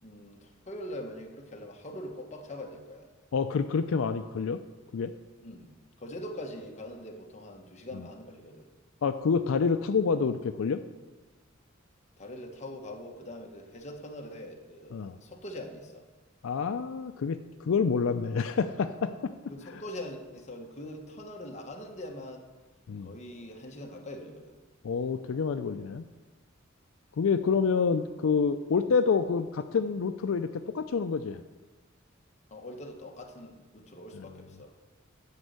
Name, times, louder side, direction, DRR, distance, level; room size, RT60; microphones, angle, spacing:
voice 1, 0.0-3.1 5.4-5.7 6.0-8.7 12.2-16.1 19.5-22.5 23.0-24.6 32.5-34.7, left 1 dB, 35° left, 2 dB, 1.3 m, -43 dB
voice 2, 3.3-4.6 4.9-5.1 7.9-8.0 9.0-10.8 14.9-15.2 16.4-19.3 19.7-19.8 22.9-23.1 24.8-26.0 27.2-30.5 30.7-31.4 34.1-34.2, left 5 dB, 75° left, 9 dB, 0.4 m, -28 dB
9.7 x 5.3 x 8.0 m, 1.2 s
head